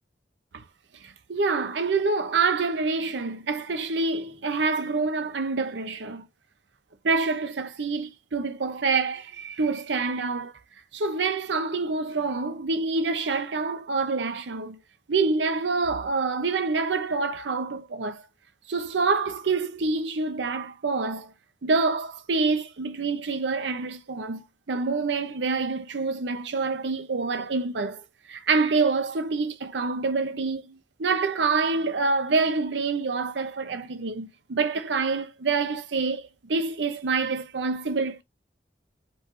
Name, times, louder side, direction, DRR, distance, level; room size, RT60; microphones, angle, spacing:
voice 1, 1.0-6.2 7.0-10.5 10.9-14.8 15.1-18.3 18.7-21.3 21.6-38.2, right 4 dB, 85° right, 0.7 m, -27 dB
5.4 x 3.0 x 3.1 m
head